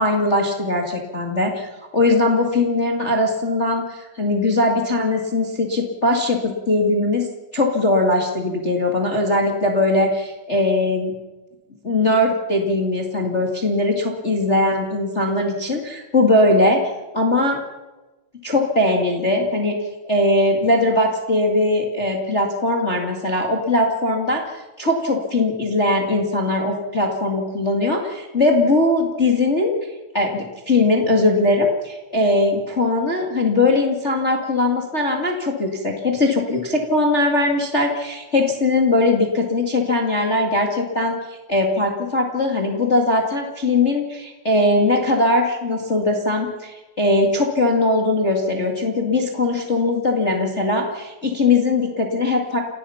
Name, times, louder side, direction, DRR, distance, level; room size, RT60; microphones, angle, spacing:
voice 1, 0.0-7.3 7.5-11.1 11.8-16.8 17.1-17.6 18.4-19.8 20.0-24.4 24.8-29.7 30.1-52.6, left 2 dB, 70° left, 1 dB, 0.6 m, -20 dB
29.5 x 17.0 x 5.8 m, 1.1 s
omnidirectional pair, 5.4 m